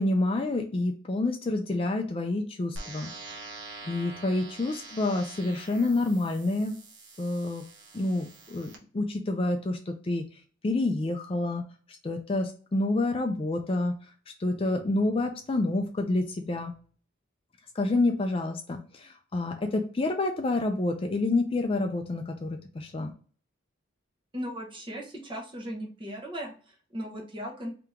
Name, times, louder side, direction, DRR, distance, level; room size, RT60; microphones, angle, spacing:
voice 1, 0.0-3.1 3.9-6.7 7.2-7.7 7.9-10.3 10.6-11.6 12.0-13.9 14.4-16.7 17.8-23.1, left 2 dB, 25° left, 4 dB, 0.4 m, -28 dB
sound 1, 2.8-8.8, right 3 dB, 60° right, 0.9 m, -45 dB
voice 2, 24.3-27.7, equal, 25° right, 1 dB, 0.9 m, -37 dB
3.5 x 2.9 x 3.5 m, 0.41 s
head